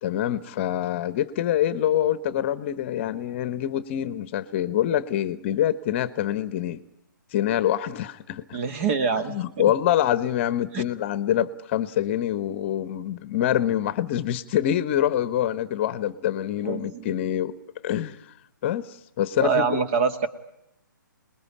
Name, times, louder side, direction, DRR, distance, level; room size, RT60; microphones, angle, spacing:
voice 1, 0.0-6.8 7.3-8.6 9.3-17.5 17.8-18.3 18.6-19.8, left 11 dB, 35° left, 16 dB, 1.1 m, -25 dB
voice 2, 8.5-9.4 10.7-10.8 16.6-17.0 19.4-20.3, right 5 dB, 35° right, 10 dB, 2.2 m, -24 dB
26.5 x 21.0 x 9.9 m, 0.83 s
figure-of-eight pair, 140°, 11 cm